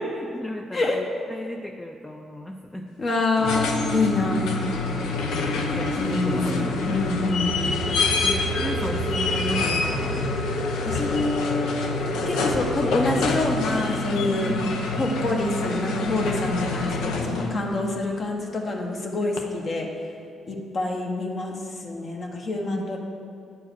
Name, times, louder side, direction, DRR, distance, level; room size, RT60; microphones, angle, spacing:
voice 1, 0.1-3.0 5.8-7.2 7.5-10.3 14.5-14.7 22.7-22.9, left 1 dB, 10° left, 3 dB, 0.4 m, -34 dB
voice 2, 0.7-1.1 3.0-4.6 6.0-7.6 10.8-11.7 12.2-14.5 15.0-19.9 20.5-21.6 21.8-23.0, left 2 dB, 50° left, 1 dB, 1.1 m, -26 dB
sound 1, 3.2-17.6 19.4-19.5, left 3 dB, 90° left, 0.7 m, -28 dB
sound 2, 3.3-18.2, left 1 dB, 65° left, 1.6 m, -33 dB
sound 3, 5.2-11.5, right 7 dB, 60° right, 0.4 m, -36 dB
9.0 x 4.6 x 6.2 m, 2.5 s
cardioid pair, 90°, 0 cm